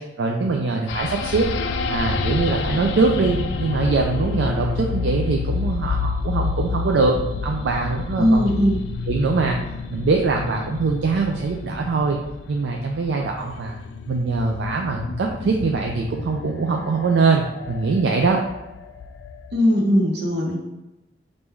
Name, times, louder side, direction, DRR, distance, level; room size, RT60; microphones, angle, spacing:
voice 1, 0.0-1.5 1.8-7.1 7.4-8.4 9.1-9.6 9.9-12.2 12.5-13.8 14.1-18.4, right 4 dB, 80° right, 1 dB, 0.4 m, -22 dB
sound 1, 0.9-19.6, left 4 dB, 70° left, 0.3 m, -29 dB
voice 2, 8.2-8.8 19.5-20.6, equal, 65° right, -2 dB, 1.1 m, -19 dB
3.6 x 2.6 x 4.4 m, 1.0 s
head